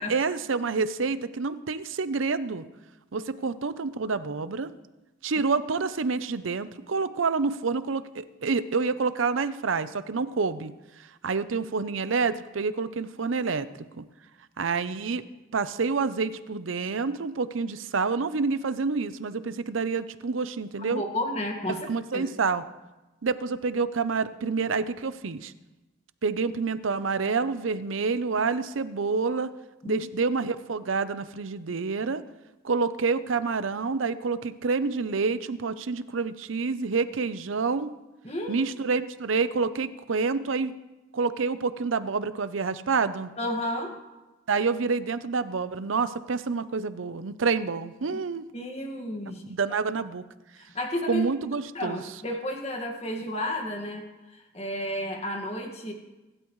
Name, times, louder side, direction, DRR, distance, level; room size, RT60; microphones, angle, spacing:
voice 1, 0.0-2.6 3.1-4.7 5.2-10.7 11.0-14.0 14.6-15.2 15.5-21.0 21.9-22.6 23.2-25.5 26.2-29.5 29.8-32.2 32.6-38.0 38.5-40.7 41.1-43.3 44.5-48.5 49.3-50.2 51.1-52.0, right 4 dB, 85° right, 13 dB, 0.6 m, -28 dB
voice 2, 20.9-21.9 22.1-22.2 29.8-30.0 38.2-38.7 43.4-44.0 48.1-48.2 48.5-49.4 50.6-51.2 51.7-55.9, left 1 dB, 30° left, 3 dB, 1.8 m, -32 dB
24.5 x 12.0 x 3.2 m, 1.1 s
head